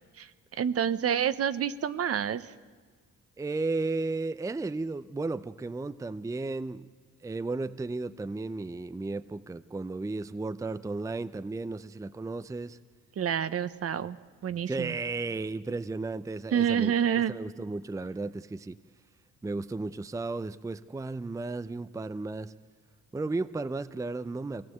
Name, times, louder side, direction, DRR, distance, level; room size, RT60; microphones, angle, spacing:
voice 1, 0.2-2.5 13.2-14.2 14.4-15.0 16.5-17.3, right 8 dB, 50° right, 14 dB, 0.9 m, -28 dB
voice 2, 3.4-6.9 7.2-12.8 14.7-16.9 17.3-18.8 19.4-22.5 23.1-24.7, right 3 dB, 10° right, 13 dB, 0.5 m, -34 dB
23.5 x 17.5 x 7.9 m, 1.5 s
cardioid pair, 90°, 30 cm